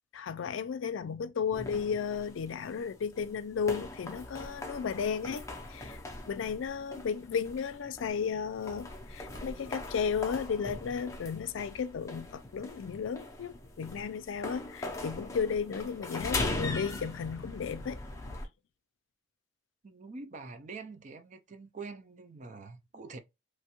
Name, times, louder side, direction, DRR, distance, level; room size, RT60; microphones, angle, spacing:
voice 1, 0.1-5.4 5.7-6.0 6.3-18.0, left 6 dB, 75° left, 0.4 m, -34 dB
sound 1, 1.5-18.5, left 2 dB, 15° left, 0.5 m, -41 dB
voice 2, 19.8-23.2, right 4 dB, 35° right, 0.4 m, -45 dB
3.0 x 2.2 x 2.9 m
head